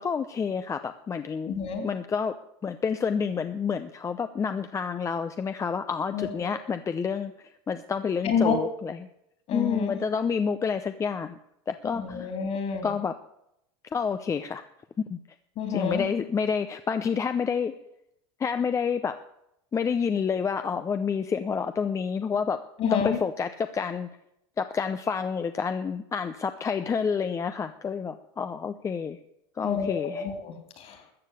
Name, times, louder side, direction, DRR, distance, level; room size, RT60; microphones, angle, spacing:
voice 1, 0.0-2.4 2.6-9.1 9.5-11.4 11.7-12.3 12.8-13.1 13.9-14.6 15.0-15.2 15.7-17.7 18.4-19.2 19.7-22.6 22.9-24.1 24.6-29.2 29.6-30.3, left 6 dB, 25° left, 9 dB, 0.7 m, -29 dB
voice 2, 1.5-1.9 6.1-6.3 8.2-8.6 9.5-10.0 11.9-12.9 15.6-16.0 22.8-23.2 29.6-30.9, left 6 dB, 50° left, 6 dB, 3.5 m, -28 dB
13.5 x 7.3 x 8.3 m, 0.79 s
supercardioid pair, 115°, 13 cm